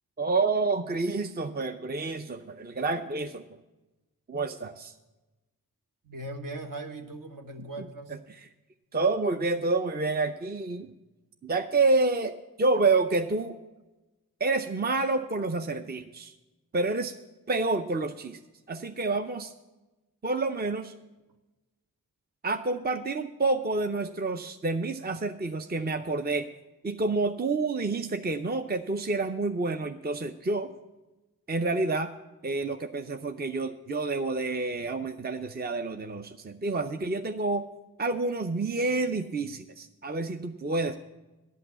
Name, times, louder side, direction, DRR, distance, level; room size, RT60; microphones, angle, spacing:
voice 1, 0.2-3.6 4.3-4.9 7.8-8.5 8.9-10.9 11.4-13.6 14.4-16.3 16.7-17.1 17.5-18.4 18.7-19.5 20.2-20.9 22.4-26.5 26.8-30.7 31.5-32.1 32.4-37.7 38.0-41.0, right 3 dB, 25° right, 7 dB, 0.6 m, -28 dB
voice 2, 6.0-8.1, right 2 dB, 60° right, 4 dB, 1.3 m, -39 dB
11.0 x 5.8 x 8.4 m, 1.1 s
cardioid pair, 50°, 37 cm